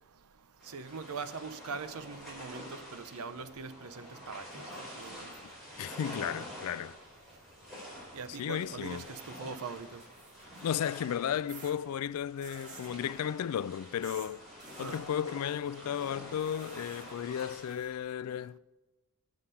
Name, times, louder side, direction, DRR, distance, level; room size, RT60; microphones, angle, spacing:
sound 1, 0.6-17.7, equal, ahead, 4.9 m, -48 dB
voice 1, 0.7-2.7 2.9-4.6 5.0-5.3 8.1-10.0 14.8-15.0, right 5 dB, 80° right, 0.7 m, -41 dB
voice 2, 5.8-7.0 8.4-9.0 10.6-14.4 14.8-18.6, left 9 dB, 80° left, 0.3 m, -34 dB
sound 2, 9.8-10.9 11.5-11.7 12.4-12.9 14.0-14.3 14.6-15.0 16.4-17.9, right 3 dB, 35° right, 2.1 m, -51 dB
9.8 x 7.2 x 9.2 m
head